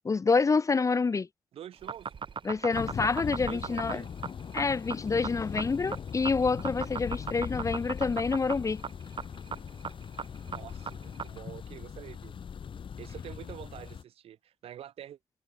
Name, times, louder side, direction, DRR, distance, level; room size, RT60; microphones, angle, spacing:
voice 1, 0.0-1.3 2.4-4.0 4.5-8.8, left 4 dB, 30° left, 0.5 m, -27 dB
voice 2, 1.5-2.1 3.5-4.1 10.4-12.4 13.0-15.2, right 10 dB, 75° right, 5.8 m, -46 dB
sound 1, 1.7-11.4, right 6 dB, 55° right, 3.2 m, -37 dB
Thunder, 2.7-14.0, left 7 dB, 60° left, 1.8 m, -40 dB
supercardioid pair, 50°, 10 cm